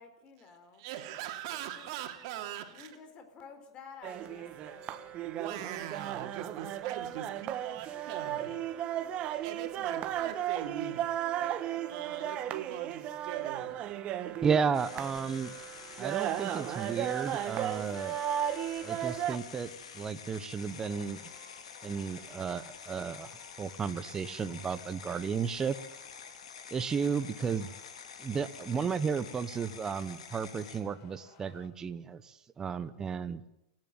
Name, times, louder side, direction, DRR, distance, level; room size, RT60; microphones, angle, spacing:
voice 1, 0.0-0.9 1.5-1.9 2.7-5.2 5.5-5.9 8.1-9.2 10.9-12.3, left 5 dB, 30° left, 7 dB, 4.1 m, -53 dB
voice 2, 0.8-2.9 4.6-4.8 5.2-8.6 9.2-11.1 11.4-11.5 11.9-13.7, right 11 dB, 55° right, 6 dB, 3.1 m, -41 dB
sound 1, 4.0-19.4, right 11 dB, 35° right, 1.4 m, -35 dB
voice 3, 14.4-15.5 16.0-18.2 18.8-21.2 21.8-23.3 23.6-25.8 26.7-27.7 28.2-33.4, right 6 dB, 20° right, 12 dB, 1.1 m, -33 dB
sound 2, 14.7-30.8, left 6 dB, 85° left, 3.2 m, -48 dB
sound 3, 20.6-31.7, left 6 dB, 50° left, 4.3 m, -59 dB
29.0 x 11.0 x 9.0 m, 0.86 s
hypercardioid pair, 130°, 3 cm